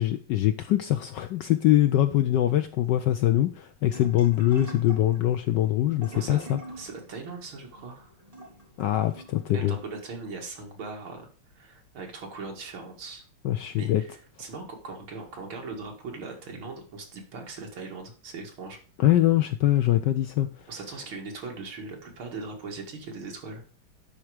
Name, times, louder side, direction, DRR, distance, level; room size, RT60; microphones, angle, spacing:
voice 1, 0.0-6.6 8.8-9.8 13.4-14.0 19.0-20.5, left 13 dB, 75° left, 1.0 m, -23 dB
sound 1, 3.9-9.8, right 2 dB, 15° right, 2.2 m, -45 dB
voice 2, 6.8-8.1 9.5-11.3 11.5-13.2 13.8-14.1 14.4-18.8 20.7-23.6, right 4 dB, 70° right, 2.7 m, -39 dB
10.5 x 4.5 x 4.9 m
omnidirectional pair, 2.4 m